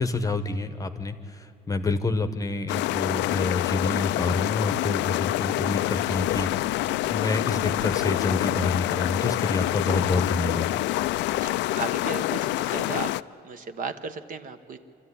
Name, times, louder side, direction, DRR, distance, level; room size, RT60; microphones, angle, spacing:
voice 1, 0.0-6.7 7.0-10.8, left 3 dB, 20° left, 10 dB, 1.0 m, -28 dB
sound 1, 2.7-13.2, left 16 dB, 80° left, 0.4 m, -26 dB
voice 2, 11.4-13.1 13.4-14.8, right 5 dB, 45° right, 9 dB, 1.1 m, -35 dB
26.0 x 13.5 x 9.8 m, 2.8 s
cardioid pair, 135°, 18 cm